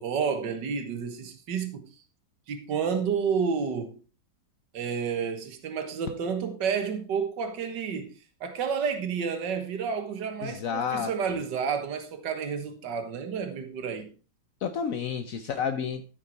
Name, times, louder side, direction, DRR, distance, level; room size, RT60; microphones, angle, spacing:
voice 1, 0.0-1.8 2.5-4.0 4.7-8.1 8.4-14.1, right 6 dB, 60° right, 2.0 m, -30 dB
voice 2, 10.4-11.1 14.6-16.1, left 7 dB, 60° left, 0.9 m, -30 dB
14.0 x 5.9 x 4.6 m
omnidirectional pair, 2.2 m